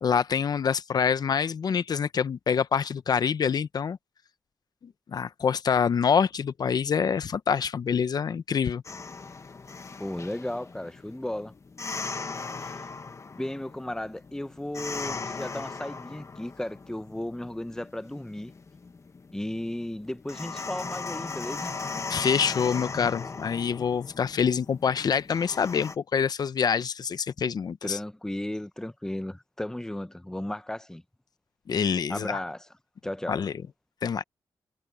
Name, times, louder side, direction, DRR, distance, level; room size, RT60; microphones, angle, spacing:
voice 1, 0.0-4.0 5.1-8.8 22.1-28.0 31.7-32.4 33.3-33.5 34.0-34.2, left 6 dB, 60° left, 0.8 m, -26 dB
sound 1, 8.8-25.9, left 4 dB, 40° left, 1.5 m, -38 dB
voice 2, 10.0-11.5 12.6-12.8 13.4-18.5 19.3-21.8 27.8-31.0 32.1-32.7 33.0-33.4, left 1 dB, 5° left, 0.8 m, -35 dB
cardioid pair, 70°, 8 cm